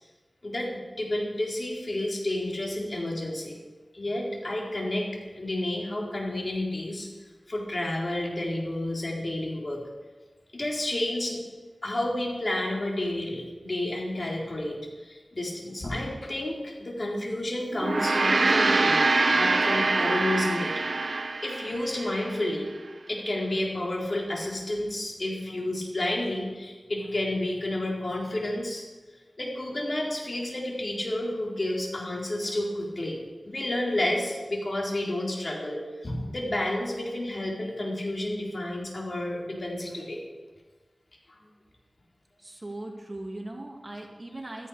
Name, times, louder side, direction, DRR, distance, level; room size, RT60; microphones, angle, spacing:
voice 1, 0.4-3.6 3.9-7.1 7.5-9.8 10.5-11.4 11.8-20.7 21.0-22.7 23.1-28.9 29.4-40.2, left 1 dB, 45° left, -2 dB, 3.9 m, -31 dB
Gong, 17.7-22.3, right 3 dB, 70° right, 0.9 m, -24 dB
voice 2, 42.4-44.7, right 1 dB, 35° right, 1 dB, 2.3 m, -39 dB
15.0 x 14.0 x 5.1 m, 1.3 s
wide cardioid pair, 60°, 0 cm